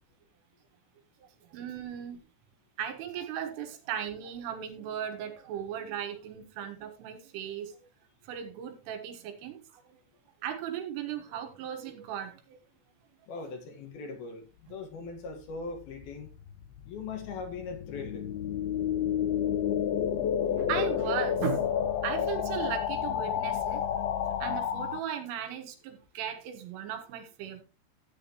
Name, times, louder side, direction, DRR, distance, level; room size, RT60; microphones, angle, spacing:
voice 1, 1.2-2.2 2.8-7.8 8.2-10.0 10.4-12.6 20.6-21.8 22.0-23.9 24.4-27.6, right 9 dB, 90° right, 4.0 m, -37 dB
voice 2, 13.3-14.4 14.7-16.3 16.9-18.4, left 4 dB, 60° left, 3.1 m, -40 dB
sound 1, 15.7-25.0, left 9 dB, 90° left, 2.1 m, -30 dB
14.0 x 8.9 x 2.9 m
omnidirectional pair, 5.5 m